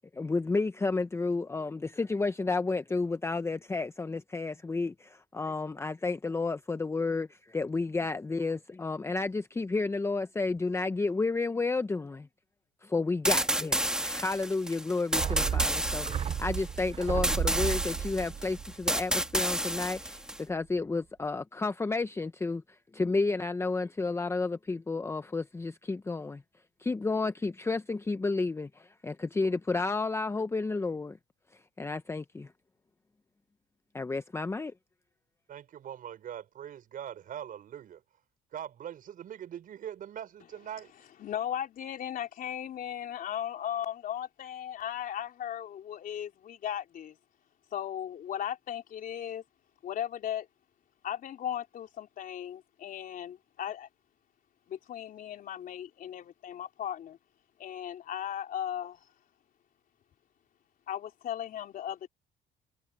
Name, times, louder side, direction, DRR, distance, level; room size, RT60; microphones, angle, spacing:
voice 1, 0.1-12.3 12.8-26.4 26.8-31.2 31.8-32.5 33.9-34.7, left 3 dB, 15° left, 0.8 m, -31 dB
sound 1, 13.2-20.4, right 1 dB, 5° right, 2.1 m, -30 dB
sound 2, 15.1-19.7 20.0-20.1, right 8 dB, 35° right, 0.6 m, -34 dB
voice 2, 35.5-38.0 38.5-40.9, right 9 dB, 55° right, 5.6 m, -42 dB
voice 3, 41.2-47.2 47.7-49.4 49.8-50.5 51.0-53.9 54.7-57.2 57.6-59.0 60.9-62.1, left 10 dB, 55° left, 3.5 m, -37 dB
cardioid pair, 110°, 17 cm